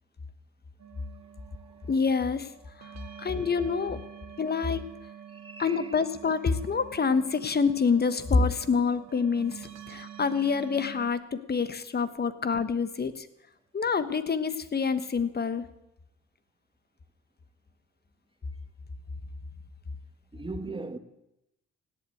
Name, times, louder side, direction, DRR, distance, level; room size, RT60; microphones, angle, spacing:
sound 1, 0.8-11.1, right 9 dB, 60° right, 1.9 m, -47 dB
voice 1, 1.9-2.5 2.8-2.9 3.2-4.0 4.4-4.9 5.6-13.3 13.7-15.7, left 5 dB, 35° left, 1.3 m, -27 dB
voice 2, 2.8-3.5 5.3-6.0 20.3-21.0, right 3 dB, 15° right, 1.5 m, -41 dB
17.0 x 8.0 x 9.3 m
cardioid pair, 90°, 30 cm